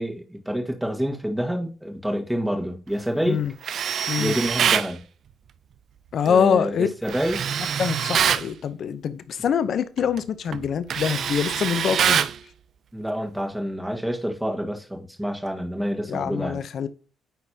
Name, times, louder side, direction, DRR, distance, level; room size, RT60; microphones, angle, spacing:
voice 1, 0.0-3.4 4.2-5.0 6.2-7.5 12.9-16.6, equal, 5° right, 1.6 m, -28 dB
Tools, 3.6-4.9 7.1-8.5 10.0-10.2 10.5-12.4, right 8 dB, 65° right, 0.4 m, -24 dB
voice 2, 6.1-6.9 7.8-12.2 16.1-16.9, left 7 dB, 60° left, 0.7 m, -24 dB
9.3 x 4.2 x 2.8 m
cardioid pair, 90°, 0 cm